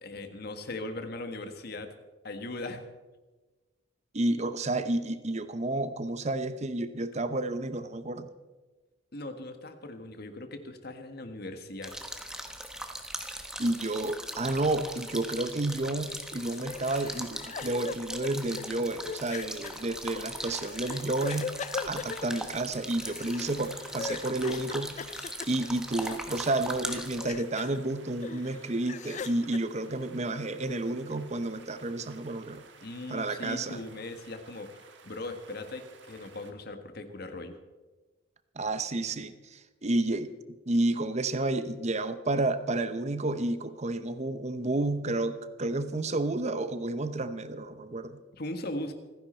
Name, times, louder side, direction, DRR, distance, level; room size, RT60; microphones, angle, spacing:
voice 1, 0.0-1.9 2.2-2.9 9.1-12.0 32.8-37.6 48.3-48.9, left 2 dB, 55° left, 7 dB, 1.5 m, -39 dB
voice 2, 4.1-8.3 13.6-21.6 21.8-25.0 25.5-32.6 33.1-33.8 38.6-40.3 40.7-48.2, right 2 dB, 35° right, 11 dB, 0.8 m, -31 dB
sound 1, 11.8-27.3, right 1 dB, 5° right, 1.3 m, -40 dB
sound 2, 16.1-26.6 26.9-27.8 28.2-29.6, left 5 dB, 40° left, 0.4 m, -41 dB
sound 3, 23.4-36.5, right 5 dB, 65° right, 1.6 m, -54 dB
26.5 x 10.5 x 4.4 m, 1.2 s
head